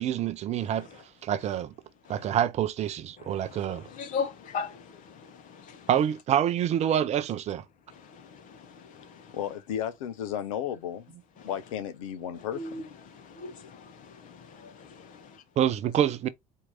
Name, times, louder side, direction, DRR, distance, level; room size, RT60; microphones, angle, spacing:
voice 1, 0.0-1.7 2.1-3.9 5.9-7.6 15.6-16.3, right 10 dB, 35° right, 0.5 m, -27 dB
voice 2, 2.0-2.4 3.2-5.9 8.0-9.4 11.4-11.5 12.5-15.2, left 5 dB, 45° left, 1.2 m, -39 dB
voice 3, 9.3-11.1 11.4-12.6, left 9 dB, 65° left, 0.8 m, -33 dB
4.5 x 2.8 x 3.7 m
figure-of-eight pair, 65°, 18 cm